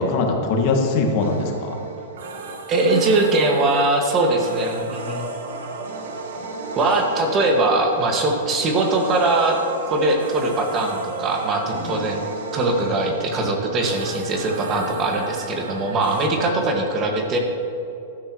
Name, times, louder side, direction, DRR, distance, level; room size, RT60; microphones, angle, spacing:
voice 1, 0.0-1.8 11.7-12.1 14.8-15.0, left 3 dB, 50° left, 1 dB, 2.0 m, -22 dB
sound 1, 1.2-16.3, right 3 dB, 75° right, 1.6 m, -34 dB
voice 2, 2.7-5.3 6.8-9.6 9.9-12.3 12.5-17.4, right 2 dB, 30° right, 2 dB, 1.9 m, -21 dB
14.5 x 12.0 x 3.1 m, 2.7 s
hypercardioid pair, 125°, 0 cm